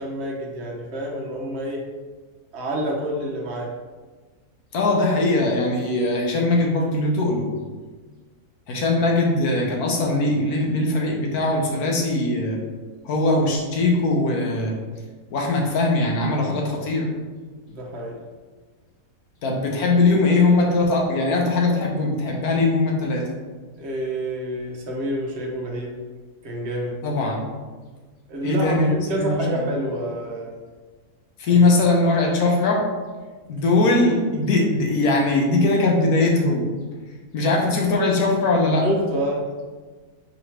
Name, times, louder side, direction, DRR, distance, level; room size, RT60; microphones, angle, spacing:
voice 1, 0.0-1.8 2.5-3.7 17.6-18.2 23.8-26.0 26.4-27.0 28.3-30.5 31.5-31.6 38.8-39.5, right 1 dB, 50° right, -2 dB, 1.1 m, -28 dB
voice 2, 4.7-7.5 8.7-12.6 13.0-14.8 15.3-17.1 19.4-23.2 27.0-27.5 28.4-29.6 31.4-32.9 33.5-36.7 37.3-38.8, left 2 dB, 75° left, -1 dB, 1.3 m, -20 dB
3.9 x 3.0 x 4.5 m, 1.4 s
omnidirectional pair, 1.6 m